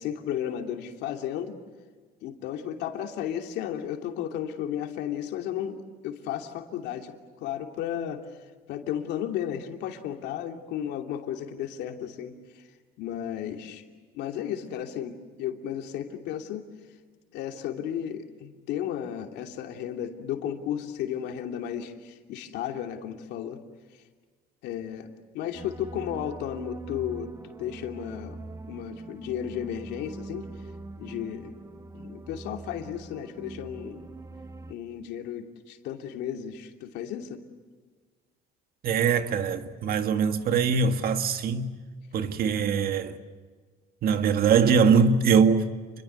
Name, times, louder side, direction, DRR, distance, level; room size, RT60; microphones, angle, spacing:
voice 1, 0.0-1.6 2.2-8.2 8.7-12.6 13.0-13.8 14.1-16.6 17.3-23.6 24.6-28.4 28.7-30.5 31.0-31.5 31.9-34.1 34.7-37.4, left 10 dB, 85° left, 2.8 m, -34 dB
sound 1, 25.5-34.7, right 3 dB, 20° right, 1.4 m, -43 dB
voice 2, 38.8-41.7 42.1-43.2 44.0-45.7, right 6 dB, 65° right, 1.9 m, -22 dB
29.0 x 23.0 x 8.2 m
cardioid pair, 110°, 17 cm